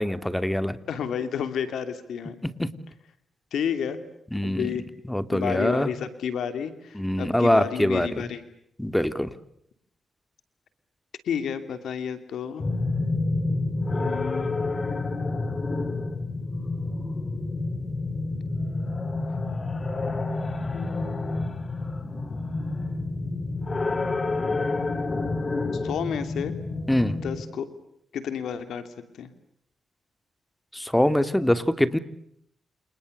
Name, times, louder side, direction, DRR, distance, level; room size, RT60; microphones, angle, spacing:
voice 1, 0.0-0.8 2.4-2.7 4.3-4.7 5.1-5.9 6.9-8.2 8.8-9.3 26.9-27.2 30.7-32.0, left 1 dB, 10° left, 11 dB, 2.9 m, -24 dB
voice 2, 0.9-2.4 3.5-4.0 4.4-4.8 5.3-8.4 11.2-12.7 13.9-14.6 20.7-21.4 25.8-26.5 27.1-27.7 28.1-28.8 29.1-29.3, left 7 dB, 80° left, 10 dB, 2.9 m, -31 dB
sound 1, 12.6-27.4, left 3 dB, 40° left, 3.5 m, -29 dB
29.5 x 28.5 x 6.7 m, 0.73 s
supercardioid pair, 50°, 0 cm